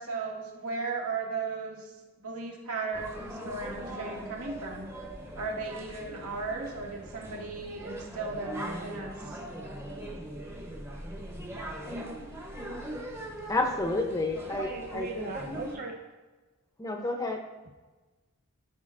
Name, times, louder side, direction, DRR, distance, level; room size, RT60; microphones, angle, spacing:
voice 1, 0.0-2.0 2.2-4.9 5.3-9.4, right 4 dB, 80° right, -2 dB, 1.9 m, -36 dB
sound 1, 2.9-15.8, right 1 dB, 10° right, 0.8 m, -41 dB
voice 2, 13.5-15.3 16.8-17.4, left 2 dB, 15° left, 3 dB, 0.6 m, -30 dB
voice 3, 14.6-16.0, right 3 dB, 40° right, 0 dB, 0.7 m, -37 dB
14.0 x 5.0 x 2.5 m, 1.2 s
head